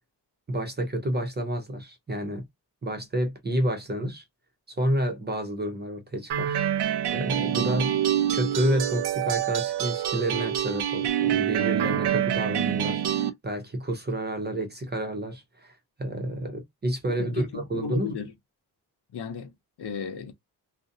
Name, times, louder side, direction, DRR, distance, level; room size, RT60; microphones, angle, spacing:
voice 1, 0.5-2.4 2.8-4.2 4.7-6.6 7.1-7.9 8.3-18.1, right 1 dB, 25° right, 0.5 m, -29 dB
sound 1, 6.3-13.3, right 10 dB, 75° right, 0.5 m, -26 dB
voice 2, 17.2-18.3 19.1-19.5 19.8-20.3, left 5 dB, 75° left, 0.7 m, -34 dB
2.5 x 2.0 x 2.5 m
wide cardioid pair, 155°, 41 cm